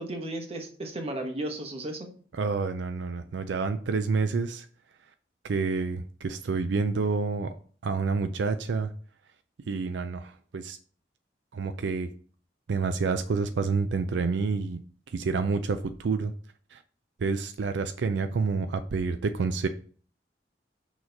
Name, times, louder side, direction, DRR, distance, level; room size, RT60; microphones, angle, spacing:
voice 1, 0.0-2.1, right 1 dB, 35° right, 4 dB, 1.1 m, -34 dB
voice 2, 2.3-4.7 5.4-7.5 7.8-8.9 9.7-10.8 11.5-12.1 12.7-16.3 16.7-16.8 17.2-19.7, right 4 dB, 80° right, 9 dB, 0.4 m, -28 dB
6.3 x 3.1 x 5.2 m, 0.44 s
head